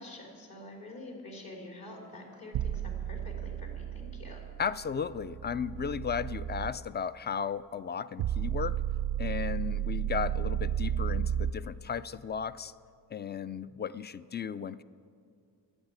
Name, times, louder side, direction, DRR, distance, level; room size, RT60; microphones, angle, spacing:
voice 1, 0.0-4.4, left 1 dB, 60° left, 0 dB, 3.2 m, -46 dB
sound 1, 2.5-6.7 8.2-11.5, right 10 dB, 85° right, 0.5 m, -33 dB
voice 2, 4.6-8.8 9.2-12.7 13.1-14.8, left 7 dB, 25° left, 16 dB, 0.3 m, -35 dB
11.5 x 8.0 x 9.0 m, 2.3 s
cardioid pair, 70°, 40 cm